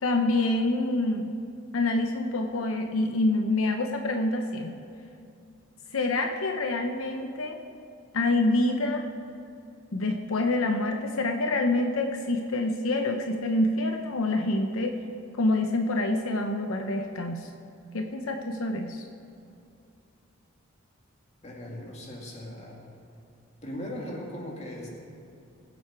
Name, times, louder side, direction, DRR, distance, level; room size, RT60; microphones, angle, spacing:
voice 1, 0.0-1.5 1.7-4.8 5.9-7.6 8.1-9.1 9.9-15.0 15.3-17.5 17.9-19.0, left 2 dB, 85° left, 4 dB, 0.8 m, -26 dB
voice 2, 21.4-22.8 23.6-24.9, left 1 dB, 30° left, -2 dB, 2.3 m, -38 dB
22.0 x 7.9 x 4.7 m, 2.6 s
head